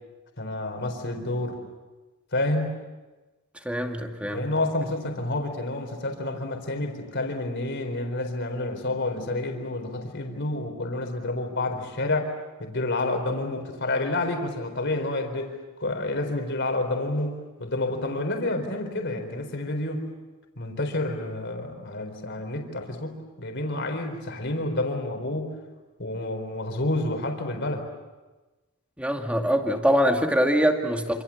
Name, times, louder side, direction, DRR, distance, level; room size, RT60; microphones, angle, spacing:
voice 1, 0.4-1.6 2.3-2.7 4.3-12.3 12.6-15.5 15.8-20.0 20.6-25.5 26.0-27.9, left 2 dB, 50° left, 4 dB, 4.2 m, -29 dB
voice 2, 3.6-4.5 29.0-31.2, equal, 5° right, 3 dB, 2.2 m, -23 dB
27.5 x 27.5 x 7.2 m, 1.2 s
head